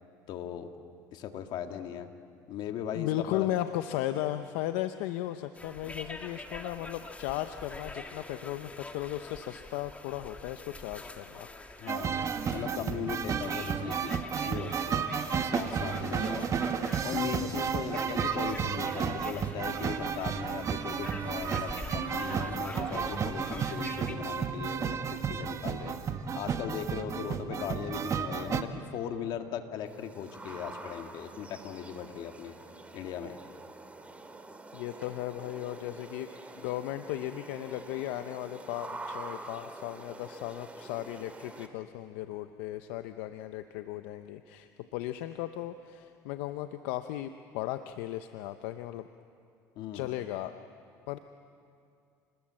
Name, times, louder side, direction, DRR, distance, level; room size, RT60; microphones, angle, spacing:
voice 1, 0.3-0.7 1.1-2.1 2.5-3.5 11.8-12.2 12.5-15.0 15.5-16.5 17.0-26.0 26.3-32.5 32.9-33.4 49.8-50.1, left 8 dB, 65° left, 5 dB, 2.1 m, -38 dB
voice 2, 2.9-11.5 15.3-15.4 16.1-16.4 16.8-16.9 17.6-17.7 34.7-36.3 36.6-49.1 49.9-50.5 51.1-51.2, left 14 dB, 85° left, 9 dB, 0.8 m, -36 dB
sound 1, 5.5-24.1, left 2 dB, 15° left, 2.0 m, -45 dB
sound 2, 11.9-28.6, right 6 dB, 40° right, 1.5 m, -32 dB
sound 3, 29.9-41.7, right 2 dB, 15° right, 2.2 m, -46 dB
29.5 x 20.5 x 7.6 m, 2.4 s
supercardioid pair, 95°, 8 cm